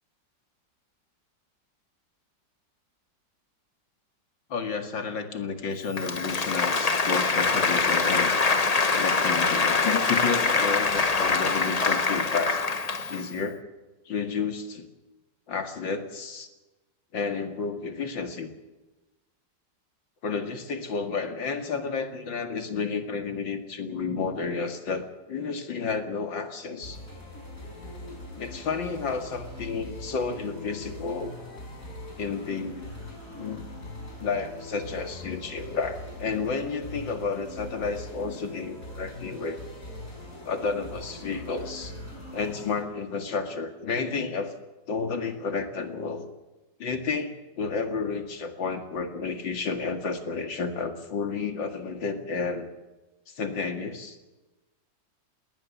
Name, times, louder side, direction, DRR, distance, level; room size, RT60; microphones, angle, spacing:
voice 1, 4.5-8.3 8.9-12.6 13.1-13.6 14.1-14.8 15.5-16.5 17.1-18.5 20.2-27.0 28.4-31.4 32.2-32.9 33.4-33.6 34.2-39.6 40.4-41.9 42.3-44.5 44.9-46.3 46.8-52.7 53.3-54.2, left 5 dB, 85° left, 6 dB, 2.9 m, -31 dB
Applause, 5.9-13.3, left 4 dB, 30° left, 0.8 m, -24 dB
sound 1, 26.8-42.8, left 1 dB, 45° left, 5.6 m, -41 dB
21.0 x 18.0 x 7.2 m, 1.1 s
omnidirectional pair, 2.0 m